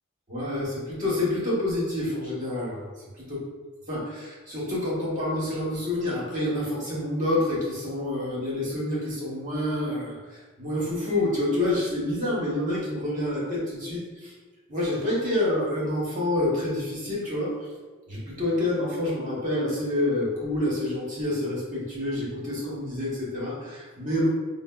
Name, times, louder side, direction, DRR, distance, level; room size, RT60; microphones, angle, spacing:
voice 1, 0.3-2.9 3.2-3.4 3.9-10.2 10.6-14.3 14.7-17.5 18.1-24.3, left 1 dB, 40° right, -6 dB, 0.9 m, -28 dB
4.7 x 2.0 x 2.2 m, 1.3 s
head